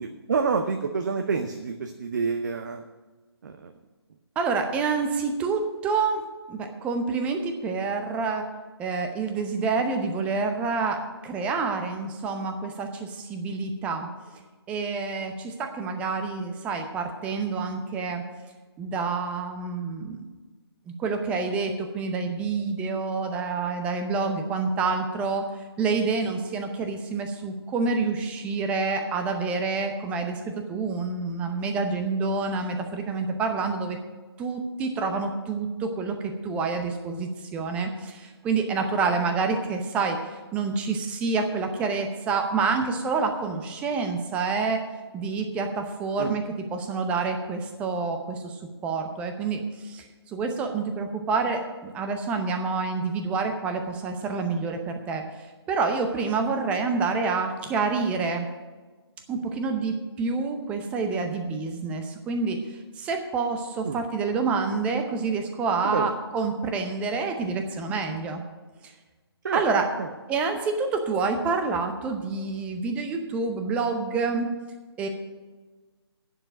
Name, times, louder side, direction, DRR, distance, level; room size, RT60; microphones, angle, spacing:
voice 1, 0.0-2.8 3.4-3.7 46.2-46.3 63.8-64.0 65.8-66.1 69.4-69.6 70.0-70.1, right 5 dB, 45° right, 6 dB, 0.7 m, -28 dB
voice 2, 4.4-8.5 8.8-14.1 14.7-18.2 18.8-20.2 21.0-25.4 25.8-34.0 34.4-44.8 45.1-48.6 48.8-55.2 55.7-58.5 59.3-68.4 68.8-68.9 69.5-69.9 70.3-74.5 75.0-75.1, right 4 dB, 10° right, 5 dB, 0.7 m, -28 dB
9.9 x 6.7 x 8.7 m, 1.3 s
figure-of-eight pair, 145°, 14 cm